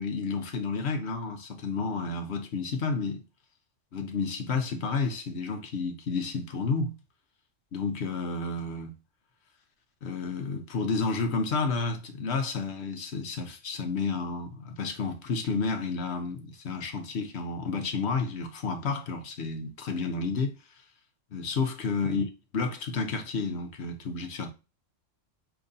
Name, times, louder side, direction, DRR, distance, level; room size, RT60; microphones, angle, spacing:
voice 1, 0.0-3.2 3.9-6.9 7.7-8.9 10.0-20.5 21.3-24.5, left 4 dB, 60° left, 1.1 m, -31 dB
5.1 x 3.4 x 2.6 m
omnidirectional pair, 1.3 m